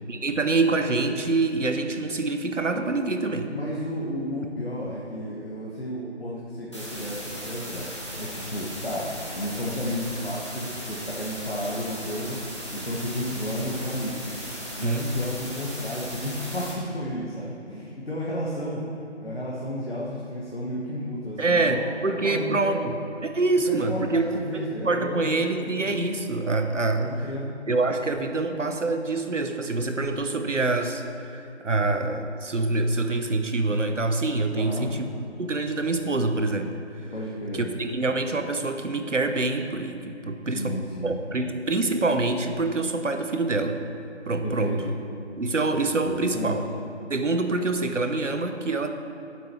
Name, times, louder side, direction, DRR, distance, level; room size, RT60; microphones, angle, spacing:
voice 1, 0.1-3.5 14.8-15.1 21.4-22.9 23.2-24.2 24.5-27.3 27.7-35.0 35.4-36.8 37.0-37.1 37.5-40.8 41.0-43.8 44.3-44.7 45.4-46.6 47.1-48.9, right 3 dB, 85° right, 7 dB, 1.0 m, -26 dB
voice 2, 3.5-7.9 8.2-12.4 12.7-14.2 14.8-18.9 19.2-22.8 23.7-26.0 27.0-27.5 34.5-34.9 37.1-37.7 40.5-41.2 44.4-44.8 46.2-46.6, left 1 dB, 55° left, -5 dB, 1.5 m, -32 dB
sound 1, 6.7-16.7, equal, 25° left, 1.5 m, -37 dB
8.6 x 7.7 x 6.1 m, 2.8 s
figure-of-eight pair, 180°, 36 cm